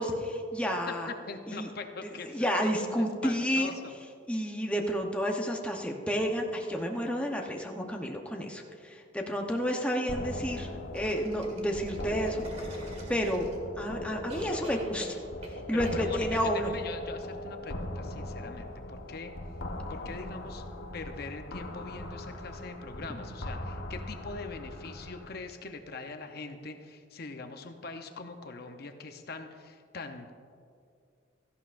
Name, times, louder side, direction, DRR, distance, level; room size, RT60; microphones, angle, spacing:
voice 1, 0.0-1.1 1.5-1.7 2.0-3.7 4.3-10.7 10.9-12.4 13.1-13.5 13.8-15.2 15.7-16.7, equal, 5° left, 1 dB, 0.8 m, -30 dB
voice 2, 1.3-2.5 2.9-3.9 15.7-19.3 19.9-20.6 20.9-30.3, left 3 dB, 55° left, 5 dB, 0.7 m, -42 dB
sound 1, 10.1-25.3, left 1 dB, 85° left, 1.2 m, -40 dB
sound 2, 10.9-13.8 14.3-15.6 15.8-16.0, right 1 dB, 35° right, 1.8 m, -46 dB
17.0 x 13.5 x 2.5 m, 2.3 s
head